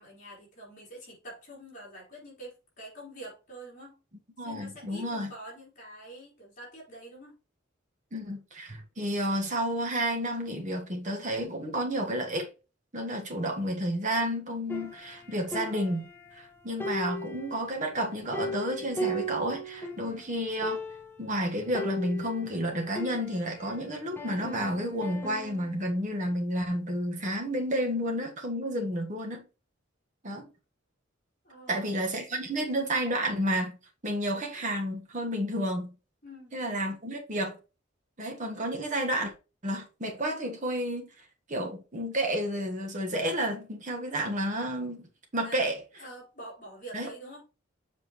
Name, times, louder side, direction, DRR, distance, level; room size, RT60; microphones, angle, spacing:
voice 1, 0.0-4.0 4.4-7.4 15.2-15.3 20.0-20.3 31.4-32.0 36.2-36.5 45.4-45.6 46.0-47.4, right 1 dB, 40° left, 4.3 m, -46 dB
voice 2, 4.4-5.3 8.1-12.5 12.9-16.1 16.4-20.8 21.2-29.5 30.2-30.5 31.7-33.8 34.0-35.9 36.5-37.6 38.2-39.3 39.6-41.1 41.5-45.1 45.3-45.8 46.9-47.1, equal, 40° right, 1.4 m, -31 dB
sound 1, 14.7-16.5 16.8-20.1 20.4-20.5 20.6-21.2 21.7-23.7 24.2-25.8, equal, 10° left, 1.0 m, -37 dB
7.4 x 5.0 x 3.1 m
head